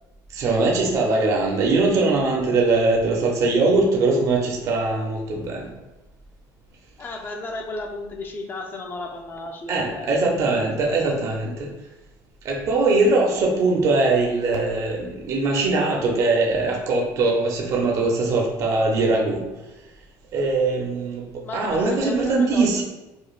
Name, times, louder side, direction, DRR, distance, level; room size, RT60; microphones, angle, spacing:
voice 1, 0.3-5.7 9.7-11.7 12.4-19.5 20.3-22.8, right 3 dB, 45° right, 0 dB, 0.5 m, -21 dB
voice 2, 7.0-10.2 21.4-22.8, left 2 dB, 25° left, 3 dB, 0.4 m, -34 dB
4.9 x 2.1 x 2.4 m, 1.0 s
cardioid pair, 145°, 8 cm